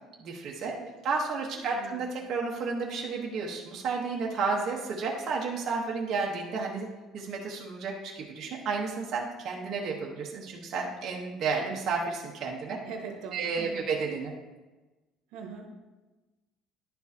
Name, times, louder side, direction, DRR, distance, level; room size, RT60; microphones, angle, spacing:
voice 1, 0.2-0.7 1.0-12.8 13.3-14.3, right 4 dB, 45° right, -2 dB, 0.9 m, -32 dB
voice 2, 1.6-2.0 12.8-13.9 15.3-15.7, right 5 dB, 90° right, 2 dB, 0.9 m, -42 dB
10.5 x 4.5 x 2.7 m, 1.2 s
cardioid pair, 145°, 0 cm